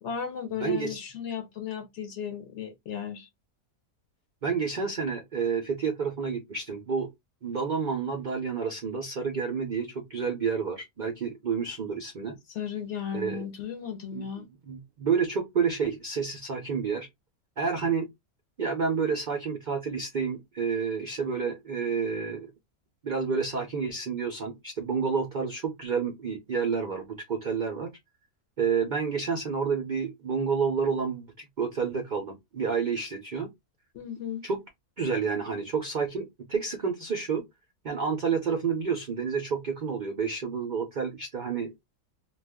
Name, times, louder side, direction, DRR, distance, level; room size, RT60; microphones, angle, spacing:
voice 1, 0.0-3.3 12.5-14.5 33.9-34.4, left 7 dB, 65° left, 0.7 m, -35 dB
voice 2, 0.6-1.0 4.4-7.1 7.4-12.4 13.1-13.4 14.1-14.3 14.7-17.1 17.6-18.1 18.6-22.5 23.0-27.9 28.6-33.5 34.4-34.6 35.0-37.4 37.8-41.7, right 5 dB, 85° right, 0.4 m, -29 dB
2.4 x 2.2 x 3.4 m
omnidirectional pair, 1.5 m